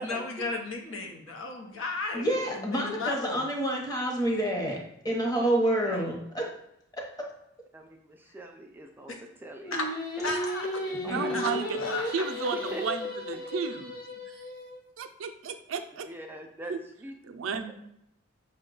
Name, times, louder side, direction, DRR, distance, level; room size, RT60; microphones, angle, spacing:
voice 1, 0.0-3.4 9.1-9.2 9.7-9.9 10.2-10.7 11.3-12.2 12.6-12.7, left 3 dB, 80° left, 3 dB, 0.7 m, -34 dB
voice 2, 2.1-6.4 7.0-7.3 11.1-11.4, right 1 dB, 20° left, 0 dB, 0.8 m, -28 dB
voice 3, 7.7-9.8 10.2-10.3 10.8-11.3 12.5-12.8 13.3-13.5 16.0-17.1, right 2 dB, 10° right, 2 dB, 0.3 m, -42 dB
Singing, 9.6-14.8, left 1 dB, 55° left, 1.1 m, -35 dB
voice 4, 11.0-11.8 12.1-14.0 15.0-16.1 16.7-16.8 17.2-17.7, right 5 dB, 80° right, 7 dB, 0.4 m, -33 dB
5.4 x 2.2 x 3.7 m, 0.78 s
head